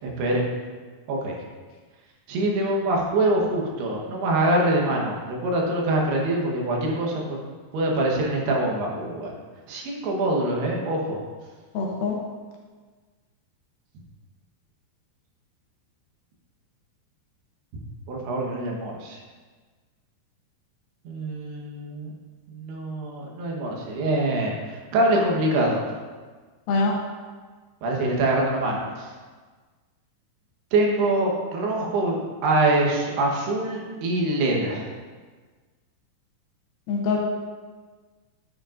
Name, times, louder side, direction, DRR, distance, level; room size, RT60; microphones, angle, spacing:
voice 1, 0.0-0.4 1.1-1.3 2.3-7.4 7.7-9.3 9.7-11.2 18.1-19.2 21.1-22.1 22.5-24.5 24.9-25.8 27.8-28.9 30.7-34.8, right 1 dB, 85° right, -1 dB, 3.3 m, -24 dB
voice 2, 11.7-12.1 26.7-26.9 36.9-37.2, left 4 dB, 75° left, 0 dB, 2.5 m, -23 dB
11.0 x 7.5 x 2.5 m, 1.4 s
omnidirectional pair, 4.6 m